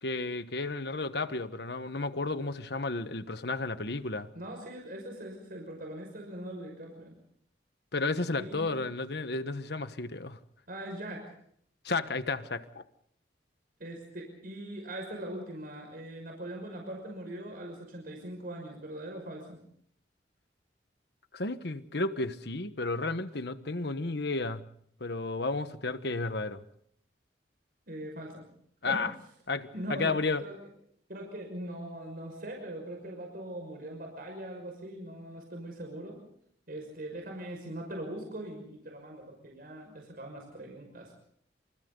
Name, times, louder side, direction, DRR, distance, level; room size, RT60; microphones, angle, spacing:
voice 1, 0.0-4.3 7.9-10.4 11.8-12.8 21.3-24.6 25.0-26.6 28.8-29.1 29.5-30.4, left 3 dB, 65° left, 1.3 m, -32 dB
voice 2, 4.3-7.2 8.4-8.8 10.7-11.2 13.8-19.6 27.9-28.5 28.8-29.0 29.7-30.6 31.1-36.2 36.7-41.1, right 1 dB, 55° right, 5.8 m, -41 dB
29.0 x 27.5 x 4.0 m
head